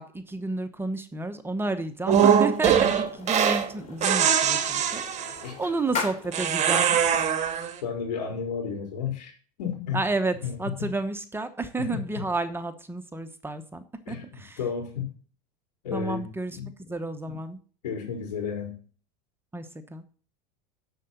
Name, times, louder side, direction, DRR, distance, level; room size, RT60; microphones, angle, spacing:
voice 1, 0.0-7.2 9.9-14.6 15.9-16.6 16.9-17.6 19.5-19.6 19.9-20.0, right 3 dB, 10° right, 1.0 m, -31 dB
sound 1, 2.1-7.2, left 5 dB, 35° left, 3.7 m, -39 dB
sound 2, 2.1-3.7 4.0-5.5 6.3-7.7, right 8 dB, 35° right, 1.7 m, -22 dB
voice 2, 7.8-9.3 9.6-10.0 10.4-10.9 11.8-12.2 14.1-15.1 15.8-16.3 16.5-16.7 17.8-18.7, left 7 dB, 90° left, 4.2 m, -32 dB
7.6 x 6.8 x 7.7 m
supercardioid pair, 115°, 20 cm